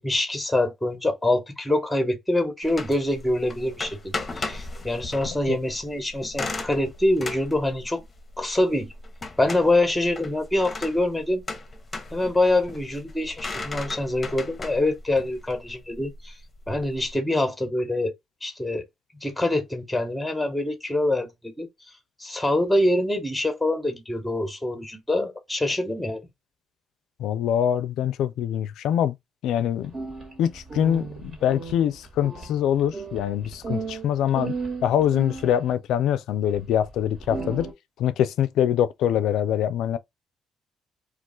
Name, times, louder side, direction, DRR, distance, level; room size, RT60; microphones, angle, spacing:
voice 1, 0.0-8.0 8.4-8.9 9.4-11.4 12.1-16.3 16.7-18.1 18.4-18.8 19.2-21.7 22.2-26.2, left 1 dB, 5° left, 0.9 m, -25 dB
sound 1, 2.6-17.1, left 3 dB, 30° left, 0.7 m, -37 dB
voice 2, 27.2-29.2 29.4-30.0 30.4-34.5 34.8-37.7 38.0-40.0, left 10 dB, 85° left, 0.3 m, -24 dB
sound 2, 29.8-35.7 36.5-36.6 37.0-37.7, right 4 dB, 45° right, 1.4 m, -35 dB
2.4 x 2.3 x 3.7 m
cardioid pair, 90°, 0 cm